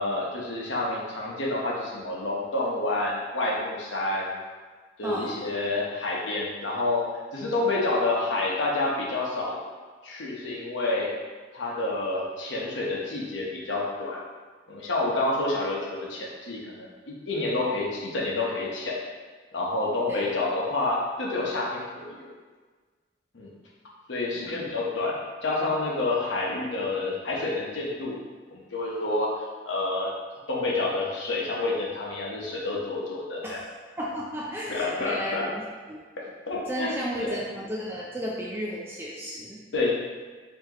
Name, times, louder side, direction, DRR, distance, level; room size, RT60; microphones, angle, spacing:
voice 1, 0.0-4.4 5.0-7.1 7.3-9.6 10.0-11.1 11.5-14.2 14.7-19.0 19.5-22.3 23.3-23.5 24.1-28.2 28.5-29.3 29.6-30.1 30.5-33.6 34.7-35.5 36.2-37.4 39.7-39.9, left 2 dB, 80° left, -3 dB, 0.9 m, -28 dB
voice 2, 5.0-5.4 20.1-20.3 24.3-24.7 33.4-35.4 35.9-36.0 36.7-39.6, equal, 10° right, -4 dB, 0.4 m, -34 dB
4.7 x 2.8 x 2.9 m, 1.4 s
head